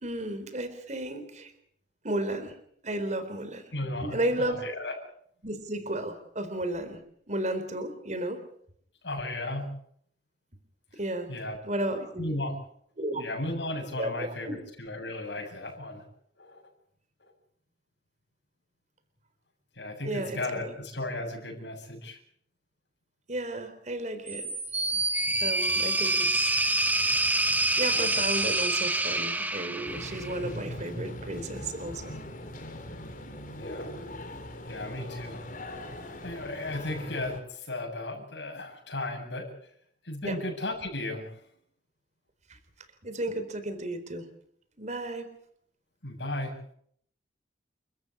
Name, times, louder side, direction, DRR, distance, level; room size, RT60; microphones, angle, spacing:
voice 1, 0.0-1.5 2.0-2.6 2.8-3.7 4.0-4.6 5.4-7.0 7.3-8.4 11.0-11.3 11.6-12.3 13.0-13.3 14.0-14.6 20.1-20.7 23.3-24.5 25.4-26.6 27.8-32.2 40.2-40.4 43.0-44.2 44.8-45.3, right 1 dB, 40° right, 9 dB, 4.3 m, -33 dB
voice 2, 3.7-5.0 9.0-9.7 11.3-11.6 12.2-12.6 13.2-16.0 16.4-16.6 19.8-22.2 33.5-33.9 34.7-35.4 36.2-39.5 40.0-41.3 46.0-46.6, left 2 dB, 85° left, 0 dB, 7.5 m, -35 dB
sound 1, 24.3-30.5, right 2 dB, 10° right, 1.5 m, -27 dB
sound 2, 29.8-37.4, left 1 dB, 50° left, 3.9 m, -40 dB
30.0 x 14.0 x 8.7 m, 0.68 s
head